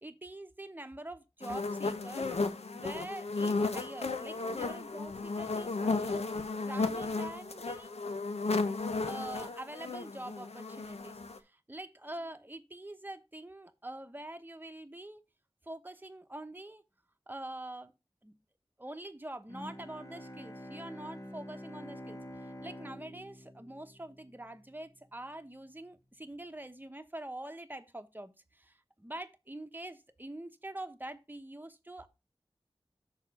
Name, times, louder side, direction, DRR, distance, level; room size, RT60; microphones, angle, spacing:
voice 1, 0.0-2.4 2.7-6.2 6.6-7.9 9.1-15.2 15.7-16.8 17.3-17.9 18.2-18.3 18.8-32.1, right 1 dB, 20° right, 0.9 m, -45 dB
sound 1, 1.4-11.4, left 3 dB, 85° left, 0.7 m, -34 dB
Bowed string instrument, 19.5-24.8, equal, 30° left, 1.1 m, -47 dB
6.6 x 4.5 x 5.8 m
wide cardioid pair, 50°, 10 cm